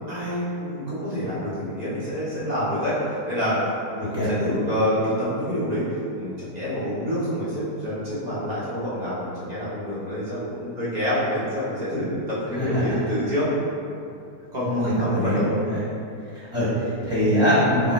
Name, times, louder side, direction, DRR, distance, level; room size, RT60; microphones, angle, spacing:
voice 1, 0.1-3.6 4.0-5.8 6.1-13.5 14.5-15.4, equal, 30° right, -11 dB, 0.8 m, -27 dB
voice 2, 12.6-12.9 14.6-15.8 16.3-17.9, equal, 5° right, -13 dB, 1.0 m, -23 dB
4.6 x 2.0 x 2.9 m, 2.6 s
omnidirectional pair, 1.9 m